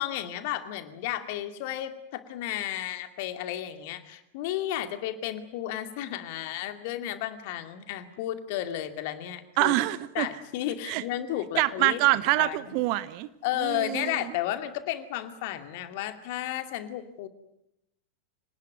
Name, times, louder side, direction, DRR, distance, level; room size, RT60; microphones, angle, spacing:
voice 1, 0.0-9.7 10.1-12.0 12.4-12.6 13.4-17.3, left 12 dB, 50° left, 9 dB, 2.4 m, -33 dB
voice 2, 9.6-10.3 10.9-11.0 11.6-13.3 13.6-14.3, right 18 dB, 45° right, 16 dB, 1.1 m, -25 dB
26.5 x 19.0 x 9.4 m, 0.82 s
figure-of-eight pair, 90°, 0 cm